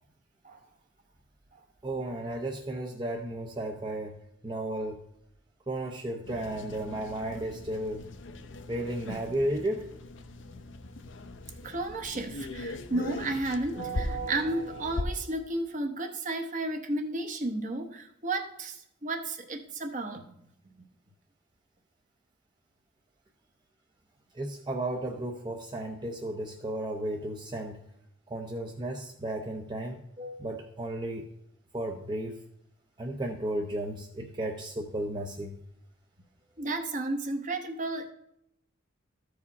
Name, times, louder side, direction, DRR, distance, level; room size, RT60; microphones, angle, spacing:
voice 1, 1.8-4.1 4.4-5.0 5.7-8.0 8.7-9.9 24.3-27.8 28.3-31.2 31.7-32.4 33.0-35.6, right 1 dB, 25° right, 1 dB, 0.6 m, -34 dB
sound 1, 6.2-15.0, left 2 dB, 65° left, 0.6 m, -40 dB
voice 2, 11.6-20.2 36.6-38.1, right 2 dB, 40° right, 5 dB, 0.9 m, -33 dB
13.5 x 4.8 x 4.1 m, 0.77 s
head